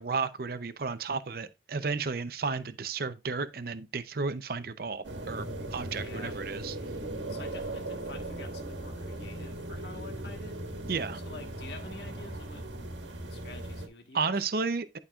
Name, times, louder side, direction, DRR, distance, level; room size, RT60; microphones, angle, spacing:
voice 1, 0.0-6.8 10.9-11.2 14.1-15.0, right 4 dB, 55° right, 0.6 m, -33 dB
sound 1, 5.0-13.9, right 1 dB, 85° right, 1.6 m, -38 dB
voice 2, 5.9-6.4 7.3-10.6 11.2-12.7 13.0-14.4, left 3 dB, 65° left, 1.5 m, -48 dB
11.5 x 5.3 x 2.4 m
head